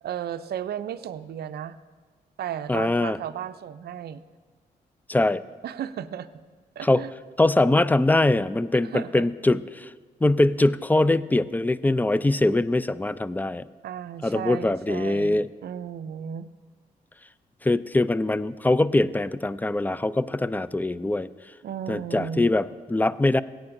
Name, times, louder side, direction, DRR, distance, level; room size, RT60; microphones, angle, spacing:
voice 1, 0.0-1.8 2.4-4.2 5.6-6.3 6.8-7.1 8.8-9.2 13.8-16.5 21.6-22.5, right 9 dB, 60° right, 11 dB, 0.5 m, -34 dB
voice 2, 2.7-3.2 5.1-5.4 6.8-7.0 7.4-9.9 10.2-13.6 14.2-15.5 17.6-21.3 21.9-23.4, left 2 dB, 10° left, 17 dB, 0.3 m, -22 dB
17.0 x 8.8 x 2.6 m, 1.4 s
supercardioid pair, 50°, 19 cm